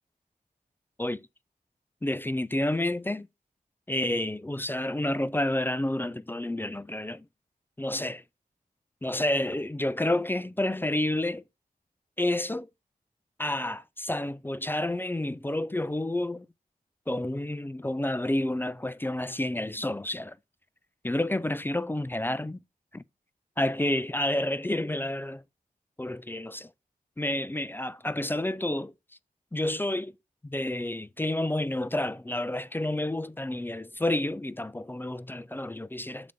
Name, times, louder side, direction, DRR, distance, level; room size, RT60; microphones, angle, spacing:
voice 1, 2.0-3.3 3.9-7.3 7.8-8.2 9.0-11.4 12.2-12.7 13.4-16.5 17.1-20.4 21.0-22.6 22.9-23.0 23.6-25.4 26.0-26.7 27.2-28.9 29.5-30.1 30.4-36.3, left 1 dB, 15° left, 0.3 m, -29 dB
6.9 x 3.9 x 5.0 m
wide cardioid pair, 80°, 15 cm